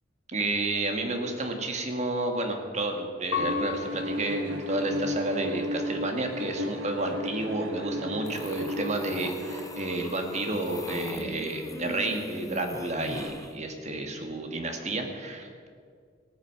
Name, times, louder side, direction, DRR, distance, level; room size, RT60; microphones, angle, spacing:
voice 1, 0.3-15.7, right 2 dB, 40° right, 4 dB, 1.7 m, -31 dB
Piano, 3.3-6.1 6.7-7.4, left 7 dB, 65° left, 1.9 m, -37 dB
Bowed string instrument, 3.3-9.9, left 1 dB, 80° right, 1.5 m, -34 dB
sound 1, 8.3-13.5, left 1 dB, 20° left, 0.7 m, -41 dB
16.0 x 9.3 x 6.6 m, 2.1 s
head